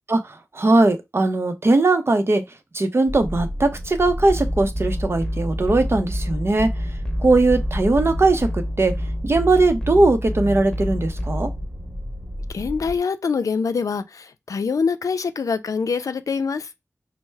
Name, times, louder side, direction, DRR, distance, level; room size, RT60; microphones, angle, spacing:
voice 1, 0.1-2.4 2.7-6.7 7.2-8.9 9.2-11.5, right 2 dB, 45° right, 0.6 m, -19 dB
sound 1, 3.1-13.0, equal, 30° right, 1.0 m, -33 dB
sound 2, 4.3-11.7, equal, 15° left, 0.9 m, -28 dB
voice 2, 12.5-16.7, left 5 dB, 75° left, 0.4 m, -24 dB
4.4 x 2.1 x 3.2 m
wide cardioid pair, 70°, 6 cm